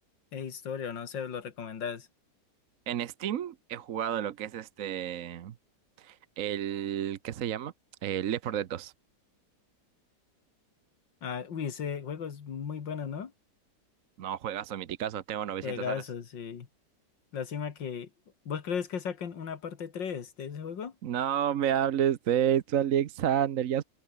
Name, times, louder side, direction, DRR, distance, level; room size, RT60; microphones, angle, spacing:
voice 1, 0.3-2.1 11.2-13.3 15.6-16.7 17.3-18.1 18.5-20.9, left 7 dB, 85° left, 2.6 m, -36 dB
voice 2, 2.9-5.5 6.0-7.7 8.0-8.9 14.2-16.0 21.0-23.8, right 10 dB, 55° right, 1.0 m, -30 dB
omnidirectional pair, 1.9 m